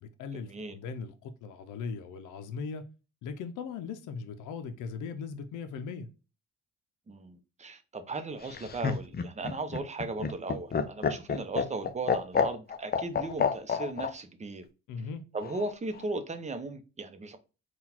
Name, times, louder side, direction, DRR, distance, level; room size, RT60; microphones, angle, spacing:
voice 1, 0.0-2.9 3.2-6.1 14.9-15.3, left 5 dB, 85° left, 0.6 m, -39 dB
voice 2, 7.1-14.6 15.3-17.4, right 3 dB, 25° right, 0.7 m, -37 dB
Laughter, 8.4-14.1 15.4-16.0, left 6 dB, 30° left, 0.5 m, -29 dB
3.9 x 2.4 x 4.2 m
cardioid pair, 90°, 30 cm